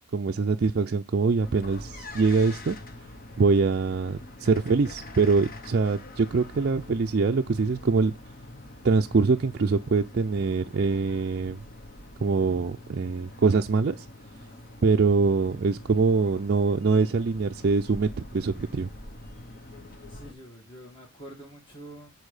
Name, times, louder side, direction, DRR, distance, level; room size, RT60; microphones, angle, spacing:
voice 1, 0.1-2.8 3.4-8.1 8.8-11.6 12.2-14.1 14.8-18.9, right 4 dB, 45° right, 0.4 m, -24 dB
sound 1, 1.4-20.3, left 1 dB, 40° left, 1.0 m, -45 dB
voice 2, 20.1-22.1, right 1 dB, 20° left, 1.3 m, -46 dB
8.3 x 4.5 x 4.9 m
head